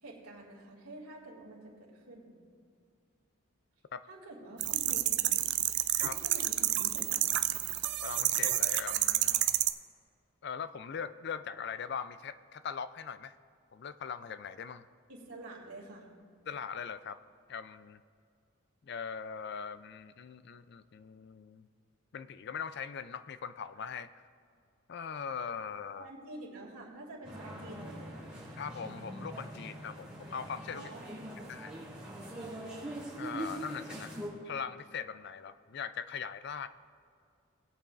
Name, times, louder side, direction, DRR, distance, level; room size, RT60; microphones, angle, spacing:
voice 1, 0.0-2.3 4.1-5.6 6.1-7.5 15.1-16.1 25.9-28.3 30.7-31.1 31.4-31.5, right 1 dB, 90° right, -1 dB, 2.5 m, -48 dB
sound 1, 4.6-9.7, right 14 dB, 50° right, 0.4 m, -29 dB
voice 2, 8.0-9.5 10.4-13.3 13.7-14.9 16.5-17.2 17.5-18.0 18.8-21.7 22.1-24.2 24.9-26.1 28.6-30.9 31.5-31.7 33.2-34.2 34.4-36.7, left 6 dB, 50° left, 13 dB, 0.4 m, -41 dB
sound 2, 27.2-34.3, right 1 dB, 5° right, 2.7 m, -43 dB
19.5 x 8.3 x 2.5 m, 2.3 s
head